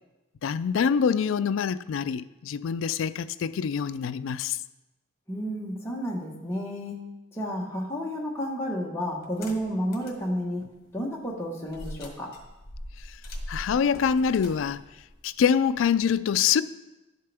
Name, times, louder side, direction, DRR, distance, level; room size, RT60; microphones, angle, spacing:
voice 1, 0.4-4.6 13.1-13.2 13.5-14.8 15.2-16.6, left 7 dB, 80° left, 0.3 m, -25 dB
voice 2, 5.3-7.0 7.3-10.6 10.9-12.3, equal, 15° left, 1.2 m, -31 dB
sound 1, 9.2-10.2 10.7-10.8 11.7-16.0, left 1 dB, 50° left, 1.4 m, -41 dB
11.0 x 6.6 x 3.5 m
head